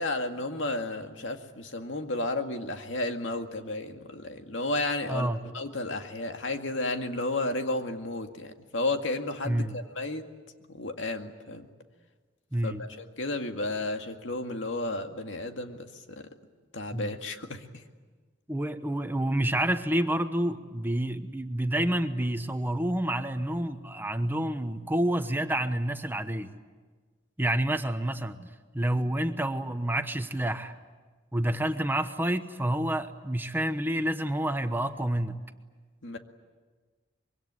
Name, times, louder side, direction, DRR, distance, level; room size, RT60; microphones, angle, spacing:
voice 1, 0.0-5.3 5.5-10.3 10.7-11.7 12.6-16.2 16.7-17.7 36.0-36.2, left 2 dB, 80° left, 5 dB, 2.1 m, -32 dB
voice 2, 5.1-5.4 9.4-9.7 12.5-12.8 16.9-17.1 18.5-26.5 27.4-30.7 31.3-35.4, right 1 dB, 10° right, 8 dB, 1.0 m, -28 dB
25.0 x 23.0 x 9.7 m, 1.4 s
head